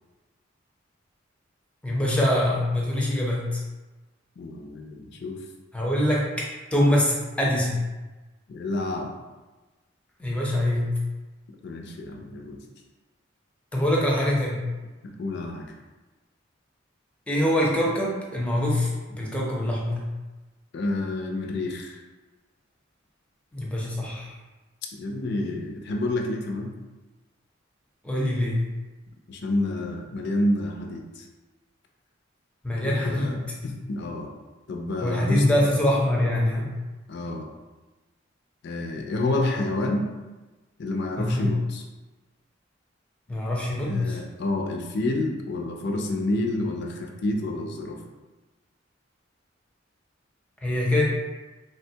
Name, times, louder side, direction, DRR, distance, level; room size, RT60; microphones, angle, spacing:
voice 1, 1.8-3.6 5.7-6.3 6.7-7.8 10.2-10.9 13.7-14.6 17.3-20.0 23.5-24.3 28.0-28.6 32.6-33.4 35.0-36.7 41.2-41.5 43.3-44.2 50.6-51.0, left 1 dB, 5° left, -4 dB, 0.5 m, -24 dB
voice 2, 4.4-5.4 8.5-9.1 11.6-12.6 15.0-15.7 20.7-22.0 24.9-26.7 29.3-31.3 32.8-33.4 33.6-34.3 34.7-35.7 37.1-37.5 38.6-40.1 40.8-41.8 43.9-48.0, left 2 dB, 60° left, 2 dB, 0.4 m, -29 dB
3.2 x 2.2 x 2.7 m, 1.2 s
head